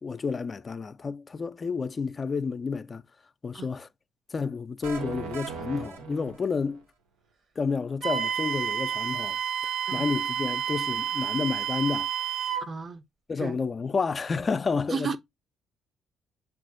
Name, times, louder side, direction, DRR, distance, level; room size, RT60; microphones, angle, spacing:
voice 1, 0.0-3.0 3.4-3.9 4.3-6.8 7.6-9.4 9.9-12.1 13.3-15.2, left 5 dB, 40° left, 0.3 m, -30 dB
sound 1, 4.8-6.8, right 6 dB, 85° right, 0.7 m, -38 dB
Wind instrument woodwind instrument, 8.0-12.7, right 8 dB, 60° right, 0.9 m, -30 dB
voice 2, 12.6-13.0 13.4-13.6 14.9-15.2, right 5 dB, 45° right, 0.5 m, -33 dB
7.2 x 2.4 x 2.5 m
hypercardioid pair, 50°, 0 cm